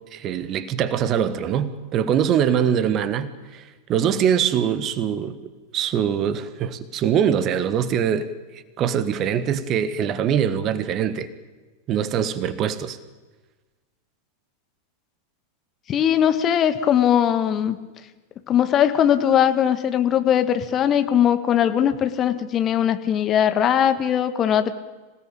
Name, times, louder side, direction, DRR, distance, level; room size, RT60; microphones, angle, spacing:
voice 1, 0.1-5.4 5.7-11.3 11.9-13.0, right 8 dB, 35° right, 14 dB, 1.5 m, -23 dB
voice 2, 15.9-17.8 18.5-24.7, left 9 dB, 30° left, 10 dB, 1.6 m, -20 dB
26.0 x 17.5 x 8.7 m, 1.2 s
figure-of-eight pair, 90°, 0 cm